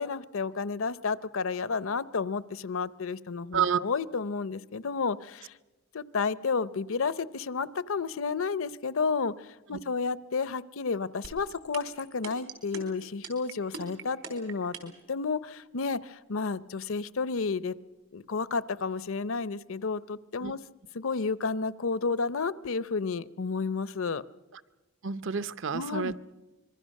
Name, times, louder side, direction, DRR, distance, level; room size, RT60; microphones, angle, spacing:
voice 1, 0.0-5.5 5.9-17.8 18.1-20.6 20.9-24.2 25.7-26.1, left 4 dB, 70° left, 18 dB, 0.7 m, -31 dB
sound 1, 11.2-15.0, right 6 dB, 80° right, 4.3 m, -40 dB
voice 2, 25.0-26.2, right 7 dB, 60° right, 16 dB, 0.7 m, -29 dB
25.5 x 22.5 x 6.5 m, 1.1 s
head